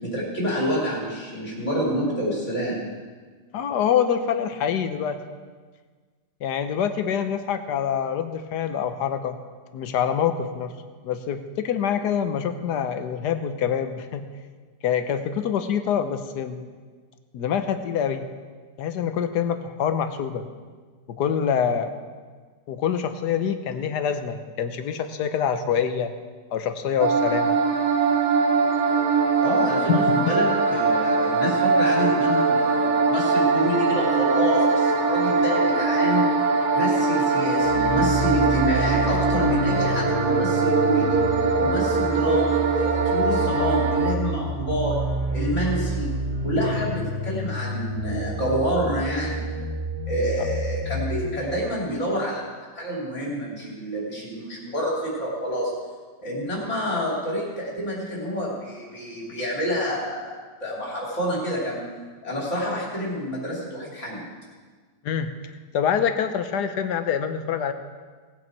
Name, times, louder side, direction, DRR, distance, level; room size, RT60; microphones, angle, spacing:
voice 1, 0.0-2.9 29.4-36.3 36.7-41.2 41.6-45.0 45.3-46.1 46.4-49.4 50.1-52.4 52.8-55.7 56.2-61.8 62.2-64.2, equal, 45° left, -5 dB, 3.6 m, -28 dB
voice 2, 3.5-5.2 6.4-9.4 9.7-10.7 11.0-14.3 14.8-16.7 17.3-18.2 18.8-20.4 21.1-21.9 22.7-26.1 26.5-27.8 29.9-30.3 65.0-65.3 65.7-67.7, left 8 dB, 75° left, 9 dB, 1.4 m, -25 dB
sound 1, 27.0-44.1, right 4 dB, 65° right, 1.6 m, -22 dB
sound 2, 37.6-51.3, right 1 dB, 50° right, 2.9 m, -29 dB
18.5 x 8.8 x 4.6 m, 1.5 s
omnidirectional pair, 1.8 m